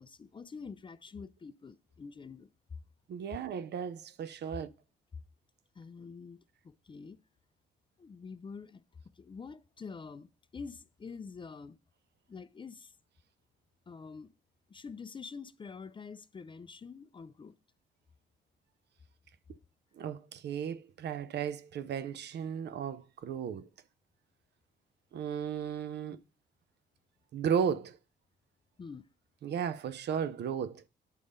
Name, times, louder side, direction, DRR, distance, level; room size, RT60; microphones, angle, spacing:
voice 1, 0.0-2.8 5.7-7.2 8.0-8.8 9.1-11.8 12.3-13.0 13.9-14.3 14.7-17.6 28.8-29.1, left 5 dB, 25° left, 0.4 m, -46 dB
voice 2, 3.1-4.7 19.9-23.7 25.1-26.2 27.3-28.0 29.4-30.8, right 7 dB, 60° right, 0.5 m, -35 dB
9.9 x 3.6 x 6.4 m
cardioid pair, 90°, 20 cm